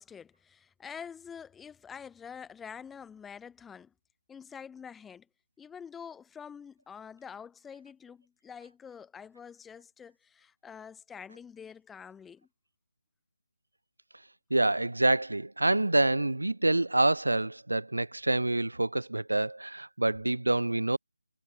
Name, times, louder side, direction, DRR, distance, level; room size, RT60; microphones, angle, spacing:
voice 1, 0.0-3.9 4.3-5.3 5.6-12.5, left 7 dB, 5° left, 0.5 m, -46 dB
voice 2, 14.5-21.0, right 2 dB, 65° right, 0.8 m, -27 dB
figure-of-eight pair, 160°, 0 cm